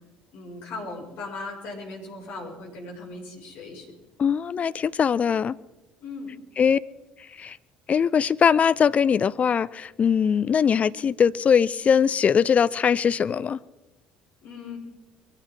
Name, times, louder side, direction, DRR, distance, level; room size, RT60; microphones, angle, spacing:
voice 1, 0.3-3.9 6.0-6.3 14.4-14.8, left 3 dB, 60° left, 6.1 m, -38 dB
voice 2, 4.2-5.6 6.6-6.8 7.4-7.6 7.9-13.6, left 7 dB, 35° left, 0.6 m, -21 dB
23.0 x 15.5 x 3.8 m
figure-of-eight pair, 55°, 4 cm